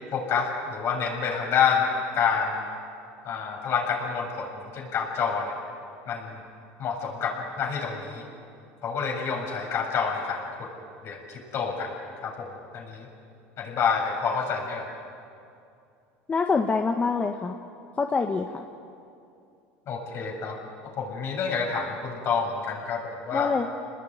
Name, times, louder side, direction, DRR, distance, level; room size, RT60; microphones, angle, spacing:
voice 1, 0.1-1.9 2.1-2.6 3.2-5.5 6.1-6.4 6.8-8.2 8.8-10.7 11.0-11.9 12.2-13.1 13.6-14.9 19.9-20.6 20.8-23.5, left 6 dB, 50° left, 1 dB, 7.2 m, -28 dB
voice 2, 16.3-17.6 18.0-18.6 23.3-23.8, left 4 dB, 25° left, 4 dB, 1.5 m, -25 dB
28.5 x 20.5 x 9.5 m, 2.5 s
supercardioid pair, 105°, 6 cm